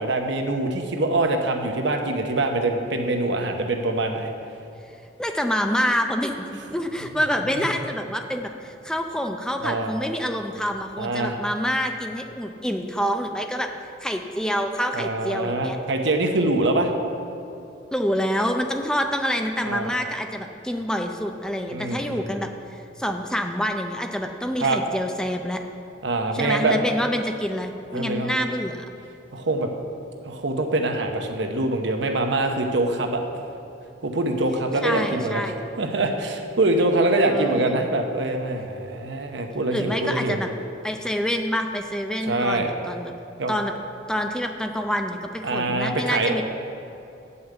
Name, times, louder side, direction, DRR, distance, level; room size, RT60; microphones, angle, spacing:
voice 1, 0.0-4.3 7.6-7.7 9.6-9.9 11.0-11.4 14.9-16.9 19.6-19.9 21.7-22.3 24.6-24.8 26.0-26.8 27.9-28.3 29.3-29.7 30.2-33.2 34.0-35.4 35.8-40.4 42.2-42.7 43.4-43.6 45.4-46.3, right 2 dB, 75° right, 4 dB, 0.9 m, -24 dB
voice 2, 5.2-13.7 14.0-15.8 17.9-25.6 26.3-28.8 34.8-35.6 37.2-37.9 39.7-40.5 40.8-43.1 43.5-43.7 44.1-46.4, equal, 5° left, 4 dB, 0.4 m, -27 dB
8.0 x 5.6 x 7.8 m, 2.6 s
head